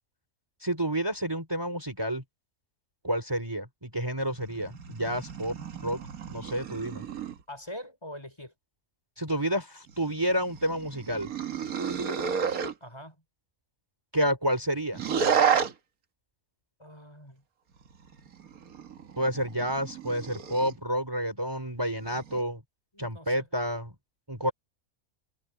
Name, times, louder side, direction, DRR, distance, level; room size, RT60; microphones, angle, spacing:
voice 1, 0.6-2.2 3.0-5.6 5.8-6.0 6.3-7.1 9.2-11.3 14.1-15.0 19.2-22.6 23.0-23.9 24.3-24.5, equal, 15° right, 3.4 m, -29 dB
sound 1, 4.2-7.4 9.9-12.7 14.9-15.7 17.8-20.8 22.0-22.4, right 7 dB, 80° right, 1.8 m, -31 dB
voice 2, 7.5-8.5 12.8-13.2 16.8-17.4 22.9-23.5 24.4-24.5, equal, 20° left, 5.5 m, -43 dB
omnidirectional pair, 1.5 m